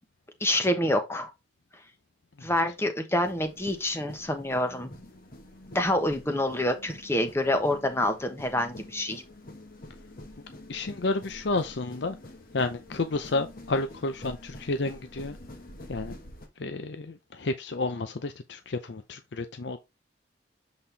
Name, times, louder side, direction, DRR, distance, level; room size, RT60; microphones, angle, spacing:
voice 1, 0.4-1.3 2.4-4.9 5.7-9.2, left 1 dB, 15° left, 1.0 m, -27 dB
sound 1, 3.2-16.5, left 1 dB, 45° left, 1.3 m, -47 dB
voice 2, 10.7-12.2 12.5-15.4 15.9-16.2 16.6-19.8, left 3 dB, 65° left, 0.6 m, -31 dB
7.5 x 4.2 x 3.4 m
head